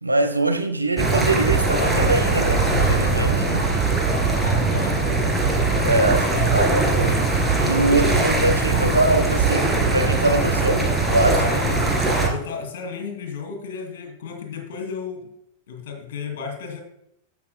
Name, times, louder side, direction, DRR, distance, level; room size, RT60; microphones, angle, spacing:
voice 1, 0.0-3.7 5.8-7.2 7.6-11.6 12.1-12.3, right 2 dB, 85° right, 1.0 m, -23 dB
sound 1, 1.0-12.3, right 3 dB, 5° right, 2.1 m, -21 dB
voice 2, 4.4-5.2 11.4-11.9 12.3-15.3 15.7-16.8, left 5 dB, 55° left, 2.6 m, -33 dB
14.5 x 6.1 x 2.2 m
figure-of-eight pair, 90°, 0 cm